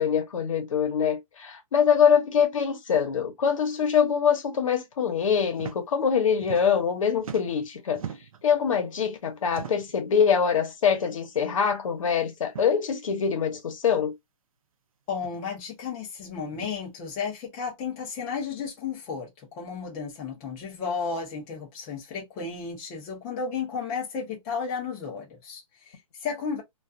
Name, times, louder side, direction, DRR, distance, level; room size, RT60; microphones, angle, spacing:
voice 1, 0.0-8.0 8.4-14.1, left 7 dB, 65° left, 0.9 m, -24 dB
sound 1, 5.5-5.8 6.1-6.9 7.2-8.5 9.5-10.0 10.9-11.1 11.4-11.5 12.4-12.7 13.9-14.0 15.1-15.4 16.5-16.7, right 8 dB, 75° right, 0.6 m, -41 dB
voice 2, 15.1-26.6, left 5 dB, 15° left, 0.5 m, -33 dB
2.3 x 2.2 x 2.5 m
hypercardioid pair, 170°, 18 cm